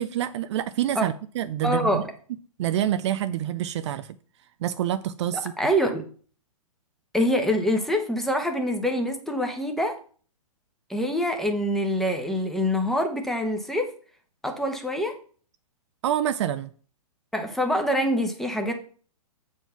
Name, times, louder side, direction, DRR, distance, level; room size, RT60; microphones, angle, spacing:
voice 1, 0.0-2.0 2.6-4.2 4.6-5.5 16.0-16.7, right 11 dB, 50° right, 0.4 m, -27 dB
voice 2, 1.6-2.1 5.6-6.0 7.1-10.0 10.9-13.9 14.4-15.2 17.3-18.7, equal, ahead, 1.1 m, -25 dB
7.6 x 4.6 x 5.7 m
hypercardioid pair, 130°, 19 cm